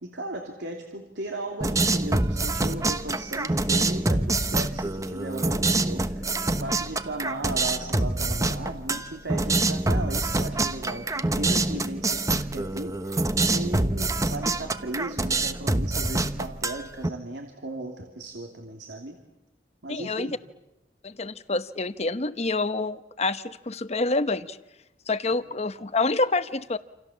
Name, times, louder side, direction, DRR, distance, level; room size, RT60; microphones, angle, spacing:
voice 1, 0.0-19.2 19.8-20.4, right 2 dB, 80° right, 3 dB, 3.0 m, -36 dB
sound 1, 1.6-17.1, right 2 dB, 20° right, 1.0 m, -26 dB
voice 2, 19.9-20.4 21.0-24.6 25.1-26.8, left 3 dB, 35° left, 12 dB, 1.0 m, -27 dB
28.5 x 27.5 x 7.4 m, 0.93 s
head